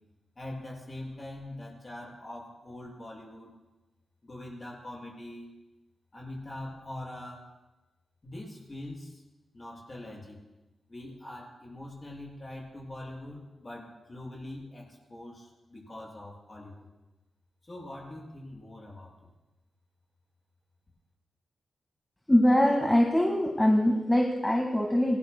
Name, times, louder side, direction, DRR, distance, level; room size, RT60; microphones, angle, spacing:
voice 1, 0.4-3.5 4.2-5.5 6.1-7.5 8.2-9.2 9.5-10.4 10.9-16.9 17.6-19.3, left 1 dB, 30° left, -3 dB, 6.2 m, -43 dB
voice 2, 22.3-25.2, left 1 dB, 10° left, 0 dB, 1.7 m, -23 dB
27.0 x 18.5 x 2.2 m, 1.1 s
wide cardioid pair, 105°, 0 cm